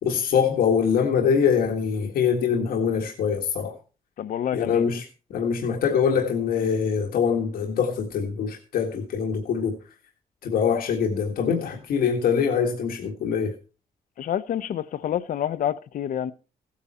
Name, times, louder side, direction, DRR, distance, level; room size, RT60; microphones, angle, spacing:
voice 1, 0.0-3.8 4.5-5.0 5.3-9.8 10.4-13.5, left 7 dB, 85° left, 1.7 m, -23 dB
voice 2, 4.2-5.0 14.2-16.3, left 10 dB, 65° left, 0.8 m, -28 dB
16.0 x 8.8 x 4.3 m
wide cardioid pair, 165°, 15 cm